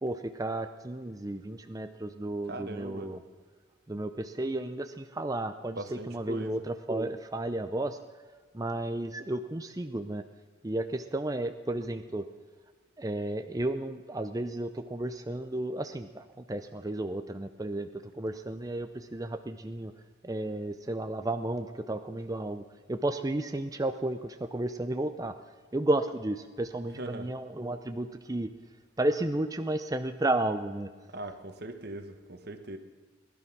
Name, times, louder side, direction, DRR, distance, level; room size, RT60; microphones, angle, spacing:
voice 1, 0.0-3.2 3.9-8.0 8.5-10.2 10.6-12.3 13.0-19.9 20.2-25.3 25.7-28.5 29.0-30.9, right 1 dB, 20° right, 8 dB, 0.5 m, -33 dB
voice 2, 2.5-3.1 5.7-6.6 26.9-27.3 31.1-32.8, right 2 dB, 50° right, 8 dB, 1.3 m, -40 dB
20.0 x 11.5 x 6.1 m, 1.5 s
head